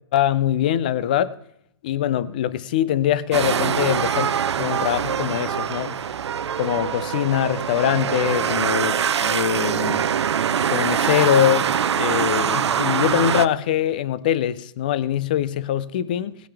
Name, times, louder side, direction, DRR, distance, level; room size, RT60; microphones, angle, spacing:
voice 1, 0.1-1.3 1.8-4.3 4.6-6.0 6.6-9.0 9.2-10.1 10.7-16.4, left 11 dB, 20° left, 0.3 m, -23 dB
sound 1, 3.3-13.5, right 8 dB, 80° right, 0.7 m, -23 dB
18.5 x 8.8 x 3.4 m
hypercardioid pair, 170°, 14 cm